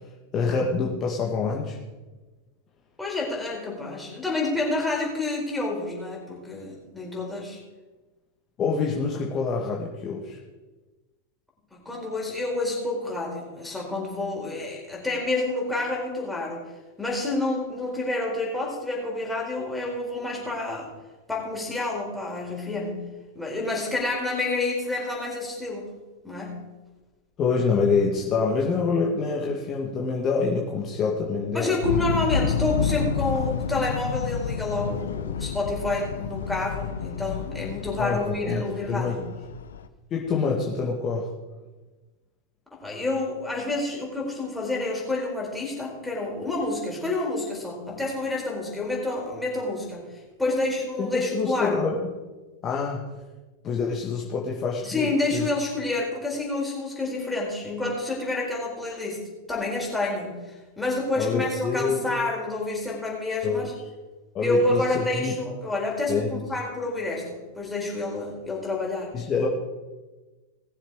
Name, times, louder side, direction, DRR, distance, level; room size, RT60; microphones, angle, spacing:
voice 1, 0.3-1.8 8.6-10.4 27.4-31.8 38.0-39.2 40.1-41.3 50.5-50.7 51.0-52.0 52.6-53.1 53.6-55.5 61.2-62.0 63.4-63.7 64.3-65.4 66.1-66.3 69.1-69.5, left 5 dB, 30° left, -2 dB, 1.9 m, -26 dB
voice 2, 3.0-7.6 11.7-16.6 17.0-20.9 21.3-23.0 23.3-25.9 26.2-26.6 31.5-39.2 40.3-40.4 42.7-51.8 54.8-59.2 59.5-63.7 64.4-69.2, left 2 dB, 5° left, -3 dB, 4.5 m, -28 dB
sound 1, 31.8-39.8, left 6 dB, 65° left, 0.7 m, -29 dB
19.5 x 7.1 x 4.8 m, 1.2 s
figure-of-eight pair, 90°, 0 cm